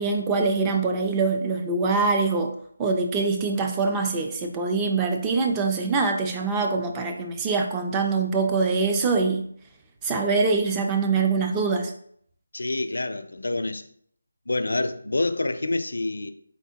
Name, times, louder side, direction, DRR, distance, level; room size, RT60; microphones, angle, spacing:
voice 1, 0.0-2.5 2.8-9.4 10.0-11.9, right 4 dB, 10° right, 3 dB, 0.4 m, -24 dB
voice 2, 12.5-13.8 14.5-16.3, left 2 dB, 85° left, 10 dB, 0.5 m, -27 dB
4.5 x 4.2 x 2.8 m, 0.64 s
figure-of-eight pair, 170°, 0 cm